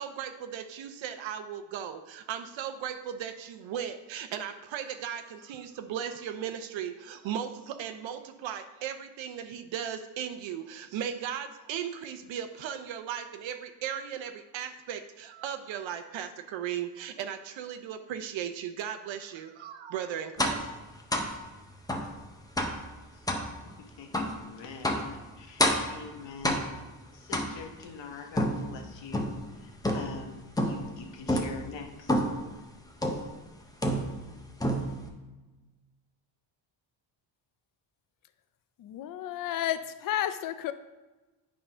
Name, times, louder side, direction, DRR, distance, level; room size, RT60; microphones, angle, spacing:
voice 1, 0.0-20.7 21.1-21.5, right 9 dB, 70° right, 8 dB, 0.7 m, -37 dB
sound 1, 20.4-20.7 21.1-21.4 21.9-22.1 22.6-22.8 23.3-23.5 24.1-24.4 24.8-25.1 25.6-26.0 26.4-26.9 27.3-27.8 28.4-29.4 29.8-30.2 30.6-30.9 31.3-31.6 32.1-32.4 33.0-33.3 33.8-34.3 34.6-35.1, equal, 10° left, 0.7 m, -28 dB
voice 2, 23.8-26.8 27.1-32.2, left 5 dB, 65° left, 5 dB, 1.1 m, -45 dB
voice 3, 38.8-40.7, left 12 dB, 45° left, 11 dB, 0.5 m, -32 dB
9.5 x 3.7 x 5.5 m, 1.2 s
cardioid pair, 150°, 47 cm